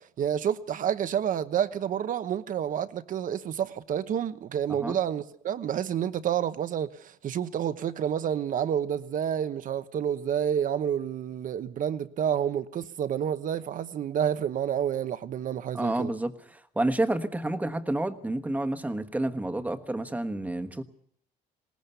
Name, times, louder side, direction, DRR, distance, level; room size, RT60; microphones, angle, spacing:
voice 1, 0.2-16.1, right 9 dB, 50° right, 1.0 m, -29 dB
voice 2, 15.7-20.8, right 1 dB, 10° right, 1.3 m, -29 dB
21.0 x 18.5 x 6.9 m
cardioid pair, 110°, 17 cm